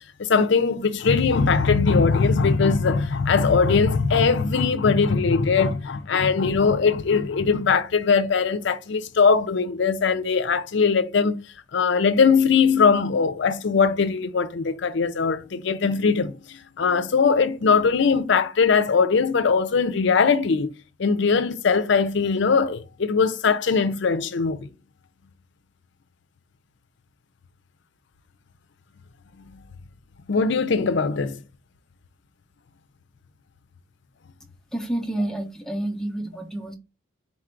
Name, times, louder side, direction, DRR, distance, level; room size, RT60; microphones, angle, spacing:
voice 1, 0.2-11.4 11.7-20.7 21.0-24.7 30.3-31.4, left 5 dB, 60° left, 0.5 m, -20 dB
voice 2, 34.7-36.7, right 1 dB, 5° left, 0.6 m, -29 dB
4.2 x 2.5 x 4.4 m
head